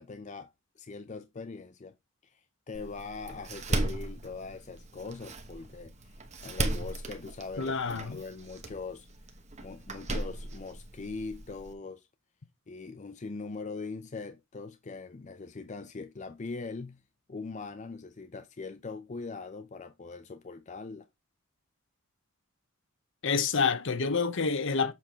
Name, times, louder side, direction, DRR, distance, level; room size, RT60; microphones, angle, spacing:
voice 1, 0.0-2.0 2.2-5.9 6.4-7.8 8.0-9.1 9.6-12.1 12.7-17.0 17.3-21.1, left 4 dB, 35° left, 0.5 m, -41 dB
Door, 2.7-11.7, right 2 dB, 35° right, 1.1 m, -37 dB
voice 2, 7.6-8.2 23.2-24.9, left 5 dB, 60° left, 0.9 m, -28 dB
7.4 x 4.7 x 3.5 m
head